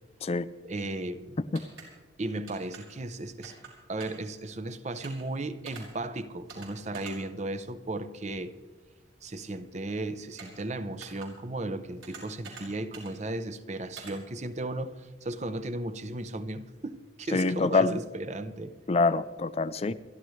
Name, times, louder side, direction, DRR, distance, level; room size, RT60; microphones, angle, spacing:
voice 1, 0.6-1.4 2.2-3.6 3.9-8.5 9.2-18.7 19.9-20.0, right 2 dB, 35° right, 0.7 m, -35 dB
sound 1, 1.5-1.9 2.5-2.8 3.4-3.7 4.0-4.3 5.0-5.2 5.7-5.8 6.5-6.7 6.9-7.1 10.4-10.6 11.0-11.3 12.0-12.6 12.9-13.1 14.0-14.1, right 5 dB, 85° right, 5.6 m, -45 dB
voice 2, 17.3-18.0 18.9-19.9, left 3 dB, 30° left, 0.4 m, -25 dB
28.0 x 12.0 x 3.2 m
head